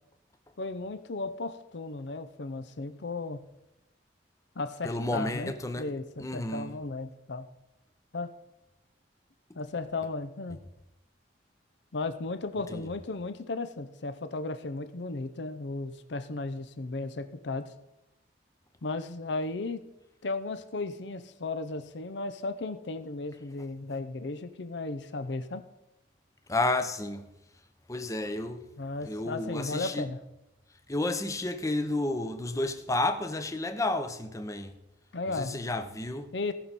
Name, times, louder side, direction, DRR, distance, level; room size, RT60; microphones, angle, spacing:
voice 1, 0.6-3.5 4.6-7.5 8.1-8.4 9.6-10.6 11.9-17.7 18.8-19.9 20.2-25.6 28.8-30.2 35.1-35.7 36.3-36.5, left 3 dB, 70° left, 0.6 m, -35 dB
voice 2, 4.8-5.8 6.2-6.8 12.7-12.8 26.5-27.2 27.9-28.6 29.0-30.0 30.9-34.7 35.4-36.3, left 2 dB, 15° left, 0.7 m, -31 dB
18.0 x 6.1 x 4.1 m
head